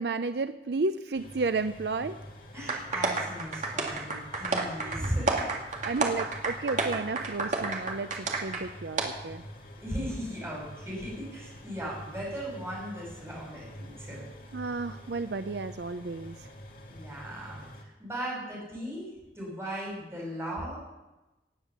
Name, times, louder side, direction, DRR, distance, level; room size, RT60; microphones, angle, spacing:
voice 1, 0.0-2.2 4.7-5.1 5.8-9.4 14.5-16.5, right 3 dB, 65° right, 11 dB, 0.5 m, -32 dB
sound 1, 1.1-17.8, equal, 50° left, 2.3 m, -47 dB
voice 2, 2.5-5.6 9.8-14.2 16.9-20.8, equal, 15° right, -4 dB, 6.3 m, -37 dB
sound 2, 2.7-8.6 9.0-9.1, right 3 dB, 45° right, 2.1 m, -30 dB
18.5 x 8.2 x 7.4 m, 1.0 s
head